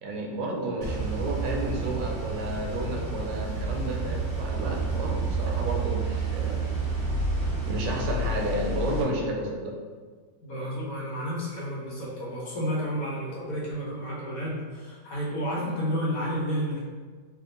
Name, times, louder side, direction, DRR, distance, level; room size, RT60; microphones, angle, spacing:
voice 1, 0.0-6.6 7.7-9.8, right 1 dB, 85° right, 0 dB, 1.3 m, -31 dB
sound 1, 0.8-9.0, right 3 dB, 25° right, 1.2 m, -29 dB
voice 2, 10.4-16.8, equal, 60° left, -5 dB, 1.3 m, -31 dB
3.6 x 2.6 x 3.7 m, 1.5 s
omnidirectional pair, 1.9 m